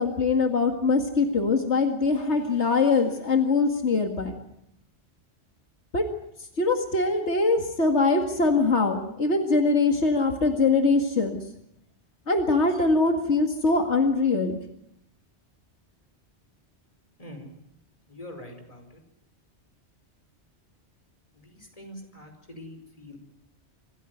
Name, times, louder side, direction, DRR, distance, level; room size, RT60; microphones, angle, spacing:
voice 1, 0.0-4.3 5.9-6.0 6.6-11.4 12.3-14.6, left 3 dB, 85° left, 3 dB, 2.4 m, -23 dB
voice 2, 17.2-17.5 18.1-19.0 21.3-23.2, left 1 dB, 30° left, 4 dB, 5.2 m, -44 dB
26.5 x 15.5 x 9.4 m, 0.78 s
omnidirectional pair, 1.1 m